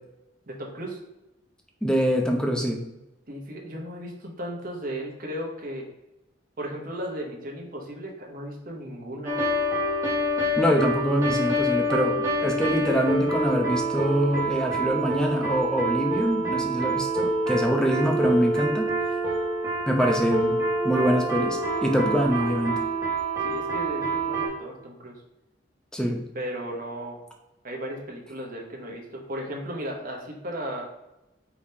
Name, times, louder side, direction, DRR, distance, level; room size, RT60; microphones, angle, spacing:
voice 1, 0.5-1.0 3.3-5.9 6.6-9.4 23.4-25.2 26.3-27.2 27.6-30.9, equal, 50° right, 0 dB, 1.0 m, -35 dB
voice 2, 1.8-2.8 10.6-18.9 19.9-20.6 20.8-22.7 25.9-26.3, equal, 5° left, 2 dB, 0.6 m, -24 dB
sound 1, 9.2-24.5, right 1 dB, 15° right, 1.0 m, -26 dB
4.8 x 3.5 x 2.8 m, 0.93 s
head